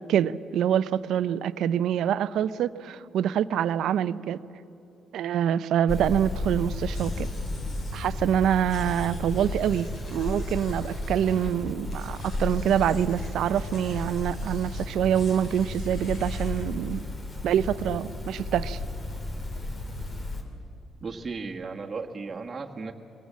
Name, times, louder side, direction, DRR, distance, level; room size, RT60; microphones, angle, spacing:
voice 1, 0.1-4.4 5.1-7.3 7.9-17.0 17.4-18.8, right 9 dB, 75° right, 0.5 m, -26 dB
sound 1, 5.9-20.4, left 2 dB, 40° left, 2.8 m, -33 dB
sound 2, 6.9-8.1 8.7-11.5 11.8-16.7, left 2 dB, 60° left, 4.2 m, -47 dB
voice 2, 21.0-22.9, right 4 dB, 35° right, 1.4 m, -35 dB
23.0 x 18.0 x 7.4 m
cardioid pair, 90°, 0 cm